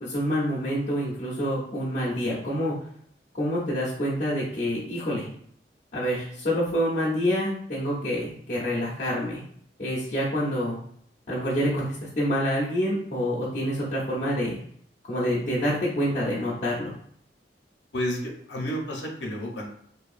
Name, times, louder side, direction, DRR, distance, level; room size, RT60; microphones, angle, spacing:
voice 1, 0.0-2.7 3.3-5.3 5.9-9.4 9.8-10.8 11.3-14.6 15.0-16.9, equal, 40° left, -7 dB, 0.6 m, -27 dB
voice 2, 17.9-19.7, equal, 80° left, 0 dB, 0.7 m, -31 dB
2.7 x 2.2 x 2.4 m, 0.63 s
head